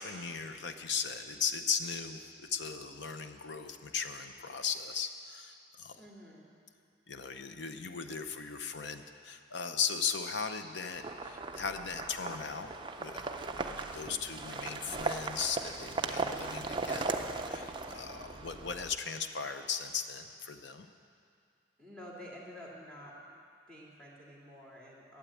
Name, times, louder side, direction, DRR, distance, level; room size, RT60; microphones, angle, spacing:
voice 1, 0.0-6.0 7.1-20.9, left 6 dB, 65° left, 8 dB, 0.7 m, -37 dB
voice 2, 6.0-6.5 21.8-23.2 23.7-25.2, equal, 5° left, -5 dB, 2.2 m, -49 dB
sound 1, 10.9-18.9, right 3 dB, 25° right, 0.4 m, -38 dB
12.5 x 8.2 x 8.4 m, 2.4 s
head